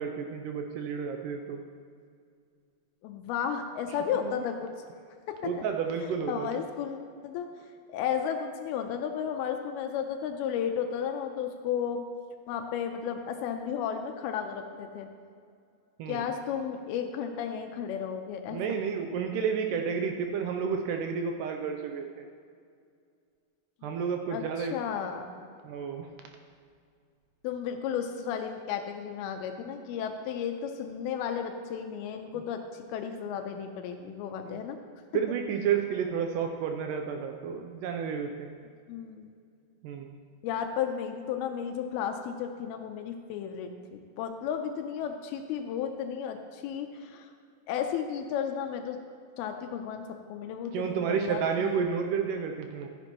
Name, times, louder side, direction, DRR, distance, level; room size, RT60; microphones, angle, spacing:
voice 1, 0.0-1.6 5.4-6.5 16.0-16.2 18.5-22.3 23.8-24.8 25.6-26.1 34.5-34.6 35.1-38.6 39.8-40.2 50.7-52.9, right 6 dB, 90° right, 4 dB, 1.9 m, -31 dB
voice 2, 3.0-4.7 5.3-5.5 6.0-12.0 12.5-15.1 16.1-18.6 23.8-23.9 24.3-25.3 27.4-34.8 38.9-39.3 40.4-47.3 47.7-49.0 49.4-51.8, left 8 dB, 90° left, 5 dB, 2.6 m, -33 dB
13.5 x 10.5 x 3.0 m, 2.2 s
omnidirectional pair, 4.4 m